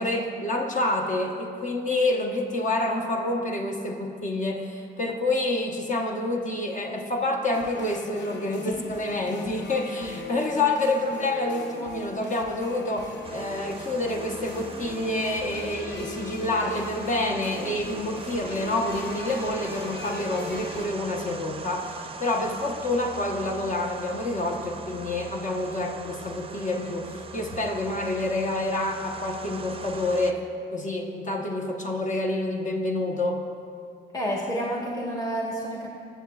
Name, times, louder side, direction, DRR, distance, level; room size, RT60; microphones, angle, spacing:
voice 1, 0.0-30.4 30.7-33.4, left 2 dB, 40° left, 2 dB, 1.0 m, -28 dB
sound 1, 7.5-20.9, left 4 dB, 60° left, 0.8 m, -40 dB
sound 2, 13.2-30.3, right 4 dB, 30° right, 0.5 m, -41 dB
voice 2, 34.1-35.9, equal, 20° left, -3 dB, 1.3 m, -29 dB
17.5 x 6.9 x 2.4 m, 2.4 s
cardioid pair, 90°, 20 cm